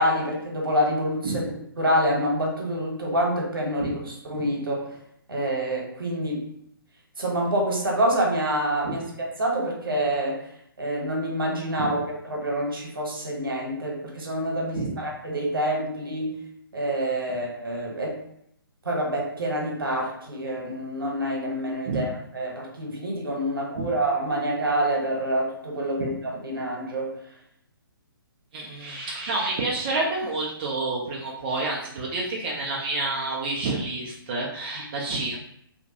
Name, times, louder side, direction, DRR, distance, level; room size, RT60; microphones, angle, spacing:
voice 1, 0.0-1.4 1.8-5.0 5.3-6.5 7.2-10.5 10.8-16.4 16.7-18.2 18.8-27.2, right 1 dB, 65° right, -1 dB, 1.0 m, -27 dB
voice 2, 28.5-35.4, right 2 dB, 25° right, -3 dB, 0.3 m, -29 dB
2.7 x 2.1 x 2.7 m, 0.71 s
figure-of-eight pair, 135°, 12 cm